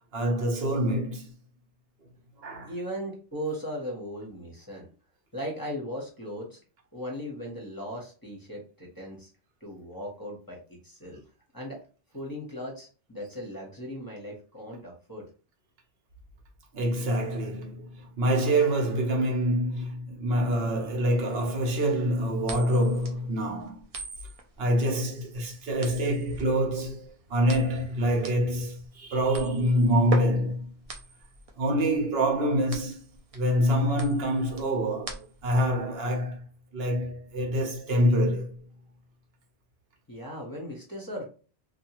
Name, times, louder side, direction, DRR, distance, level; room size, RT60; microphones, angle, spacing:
voice 1, 0.1-1.3 2.4-2.7 16.7-23.8 24.6-30.7 31.6-33.0 33.3-35.2 35.4-36.4 36.7-38.6, equal, 70° right, 1.0 m, -26 dB
voice 2, 2.7-4.9 5.3-6.6 6.9-9.3 9.6-10.6 10.8-11.2 11.5-11.8 12.1-15.2 40.1-41.3, equal, 20° left, 0.8 m, -37 dB
sound 1, 22.4-35.6, right 2 dB, 45° right, 0.5 m, -41 dB
2.7 x 2.3 x 2.9 m
omnidirectional pair, 1.1 m